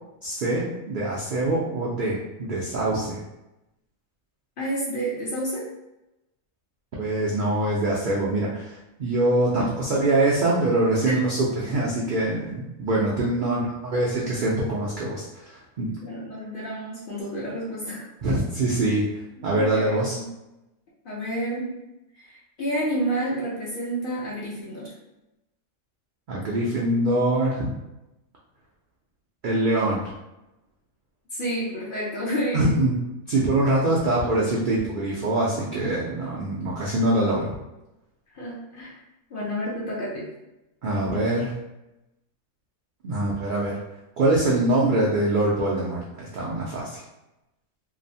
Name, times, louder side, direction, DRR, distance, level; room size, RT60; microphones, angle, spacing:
voice 1, 0.2-3.2 7.0-15.9 18.2-19.0 19.4-20.2 26.3-27.7 29.4-30.0 32.5-33.0 33.3-37.6 40.8-41.5 43.0-43.8 44.2-47.0, right 2 dB, 85° right, -5 dB, 0.4 m, -24 dB
voice 2, 4.6-5.7 11.0-11.1 13.5-13.6 16.0-18.1 19.5-20.3 21.0-21.8 22.2-24.9 31.3-32.8 38.3-39.0 39.3-40.2, right 1 dB, 60° left, -5 dB, 0.6 m, -30 dB
2.9 x 2.0 x 2.6 m, 0.94 s
omnidirectional pair, 1.4 m